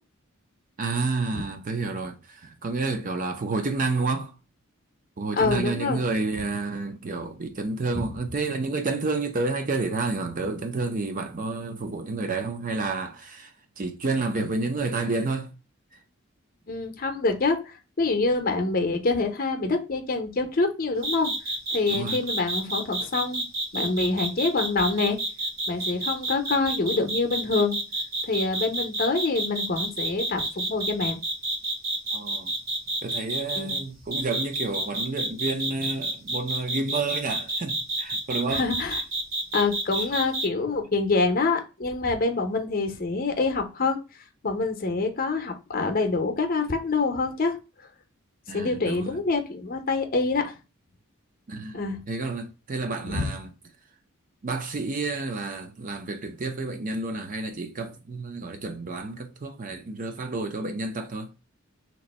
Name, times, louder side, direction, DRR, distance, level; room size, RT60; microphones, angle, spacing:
voice 1, 0.8-4.3 5.2-15.5 21.9-22.2 32.1-32.5 33.0-38.7 48.5-49.2 51.5-51.8 52.1-53.5 54.4-61.3, right 3 dB, 40° right, 0.5 m, -30 dB
voice 2, 5.3-6.0 7.9-8.0 16.7-21.3 21.7-23.4 23.7-25.2 25.7-27.8 28.2-31.2 33.5-33.8 38.5-39.0 39.5-44.0 44.4-47.6 48.5-50.5 51.7-52.0 53.0-53.3, left 3 dB, 45° left, 0.7 m, -26 dB
sound 1, 21.0-33.8 34.1-40.5, right 2 dB, 70° right, 1.5 m, -29 dB
3.0 x 2.6 x 4.1 m
head